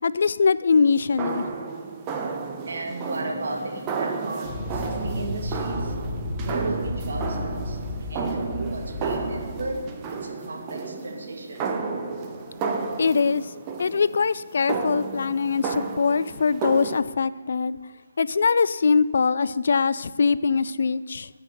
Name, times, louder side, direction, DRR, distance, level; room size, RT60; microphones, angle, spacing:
voice 1, 0.0-1.5 13.0-13.5 13.8-17.8 18.2-21.3, left 5 dB, 60° left, 17 dB, 0.4 m, -22 dB
sound 1, 0.9-17.0, right 4 dB, 20° right, 1.0 m, -32 dB
voice 2, 2.7-5.9 6.5-7.8 8.1-9.8 10.2-11.7, right 2 dB, 65° right, 1 dB, 2.1 m, -35 dB
sound 2, 4.4-9.7, left 2 dB, 25° left, 3.2 m, -33 dB
12.5 x 5.8 x 6.6 m, 1.3 s
figure-of-eight pair, 145°, 0 cm